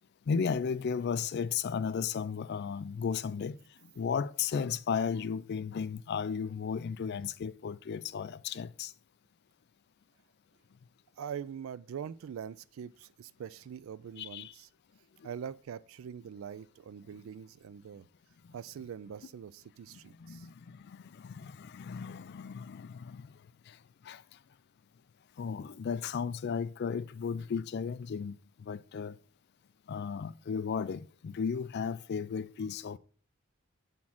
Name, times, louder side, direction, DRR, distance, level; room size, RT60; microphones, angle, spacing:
voice 1, 0.3-3.6 4.0-8.9 14.2-14.5 20.2-23.3 24.1-24.2 25.4-28.4 28.7-29.2 29.9-33.0, left 6 dB, 50° left, 0.3 m, -34 dB
voice 2, 11.2-14.7 15.2-18.1 18.5-20.5, right 8 dB, 65° right, 0.3 m, -43 dB
6.3 x 3.6 x 5.8 m
head